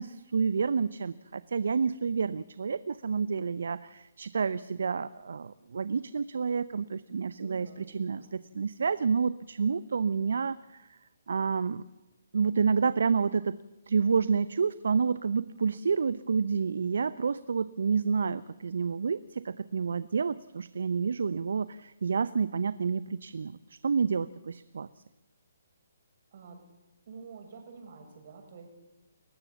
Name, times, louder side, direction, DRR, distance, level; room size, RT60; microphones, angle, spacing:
voice 1, 0.0-11.0 11.3-11.8 12.3-13.6 13.9-24.9, right 5 dB, 65° right, 16 dB, 0.7 m, -29 dB
voice 2, 7.4-8.3 26.3-26.6 27.1-28.7, right 5 dB, 50° right, 4 dB, 6.7 m, -48 dB
29.5 x 15.0 x 7.2 m, 1.1 s
figure-of-eight pair, 140°, 0 cm